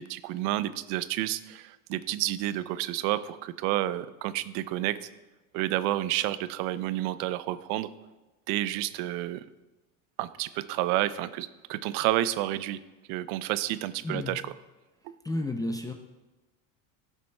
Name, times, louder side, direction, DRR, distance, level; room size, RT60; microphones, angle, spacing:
voice 1, 0.0-5.0 5.5-7.9 8.5-9.4 10.2-12.8 13.1-14.5 15.0-15.1, right 14 dB, 65° right, 15 dB, 0.5 m, -30 dB
voice 2, 14.0-14.4 15.2-15.9, left 2 dB, 10° left, 3 dB, 0.4 m, -31 dB
12.0 x 7.2 x 2.2 m, 1.1 s
supercardioid pair, 100°, 41 cm